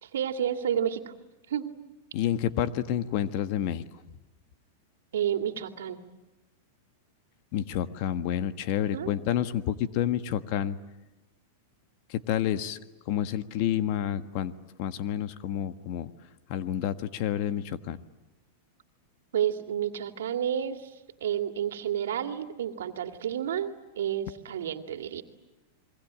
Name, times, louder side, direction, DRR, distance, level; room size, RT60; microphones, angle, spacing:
voice 1, 0.0-1.1 1.5-1.7 5.1-6.0 8.9-9.1 19.3-25.2, right 9 dB, 85° right, 8 dB, 2.3 m, -30 dB
voice 2, 2.1-3.9 7.5-10.8 12.1-12.8 13.0-16.1 16.5-18.0, left 10 dB, 55° left, 11 dB, 1.5 m, -29 dB
28.0 x 23.0 x 8.8 m, 1.0 s
hypercardioid pair, 125°, 0 cm